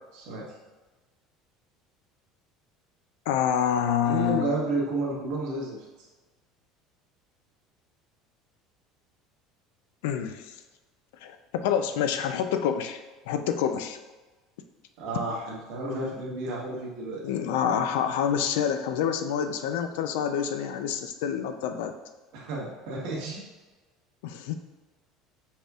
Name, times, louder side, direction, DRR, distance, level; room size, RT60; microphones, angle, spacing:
voice 1, 0.1-0.4 4.0-6.1 15.0-17.2 22.3-23.4, right 2 dB, 70° right, -4 dB, 1.3 m, -31 dB
voice 2, 3.3-4.6 10.0-10.5 11.2-13.0 13.3-14.0 17.2-22.0 24.2-24.5, left 8 dB, 90° left, 8 dB, 0.4 m, -27 dB
5.1 x 4.3 x 2.3 m, 1.2 s
cardioid pair, 130°, 0 cm